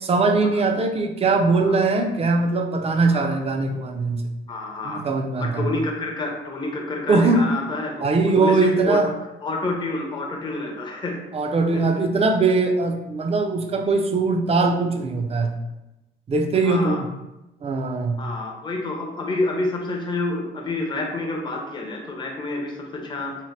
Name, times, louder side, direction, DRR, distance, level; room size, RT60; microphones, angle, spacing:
voice 1, 0.0-4.3 4.8-5.7 7.1-7.5 8.0-9.1 11.3-15.5 16.3-17.1 17.6-18.2, right 3 dB, 30° right, 3 dB, 0.4 m, -21 dB
voice 2, 3.1-3.4 4.5-5.0 5.4-8.0 8.4-9.0 9.4-11.2 11.7-11.8 16.6-17.0 18.2-23.4, left 2 dB, 25° left, 0 dB, 0.5 m, -28 dB
2.8 x 2.0 x 3.1 m, 0.97 s
cardioid pair, 90°, 20 cm